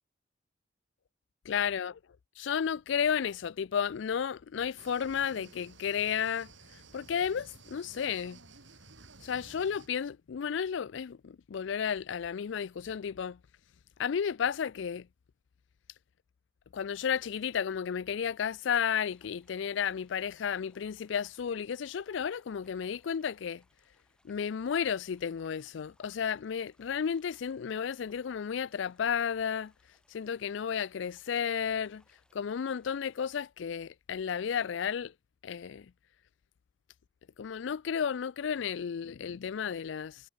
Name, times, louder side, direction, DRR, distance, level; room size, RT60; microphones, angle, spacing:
voice 1, 1.5-2.0 2.4-6.5 6.9-8.4 9.2-13.4 14.0-15.1 16.7-23.6 24.2-29.7 30.1-32.0 32.3-35.1 35.4-35.9 37.4-40.2, left 7 dB, 65° left, 0.4 m, -33 dB
sound 1, 4.8-9.9, right 3 dB, 65° right, 6.4 m, -54 dB
sound 2, 18.8-33.4, left 1 dB, 5° left, 6.0 m, -71 dB
head